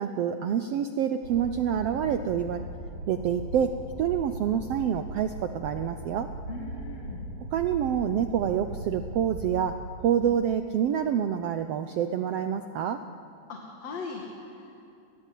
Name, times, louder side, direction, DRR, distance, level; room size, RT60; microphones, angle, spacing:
voice 1, 0.0-2.6 3.1-3.7 4.0-6.3 7.5-13.0, right 9 dB, 75° right, 8 dB, 1.4 m, -27 dB
sound 1, 1.2-10.0, right 1 dB, 55° right, 4.6 m, -39 dB
voice 2, 6.5-7.2 13.5-14.8, left 3 dB, 55° left, 0 dB, 3.2 m, -39 dB
30.0 x 21.5 x 8.4 m, 2.5 s
omnidirectional pair, 3.6 m